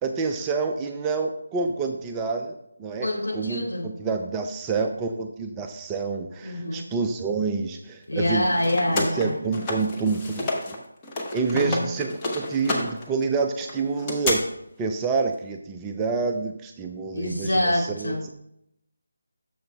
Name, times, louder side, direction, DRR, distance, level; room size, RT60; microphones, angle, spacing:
voice 1, 0.0-8.5 8.9-10.8 11.3-14.4 14.8-18.3, right 4 dB, 15° right, 4 dB, 0.3 m, -28 dB
voice 2, 3.0-3.9 6.4-6.8 8.1-9.4 11.5-11.9 17.1-18.3, left 1 dB, 65° left, -3 dB, 3.0 m, -26 dB
sound 1, 8.2-10.8 11.0-14.4, left 2 dB, 15° left, 1.0 m, -30 dB
10.0 x 6.9 x 2.2 m, 0.76 s
figure-of-eight pair, 155°, 0 cm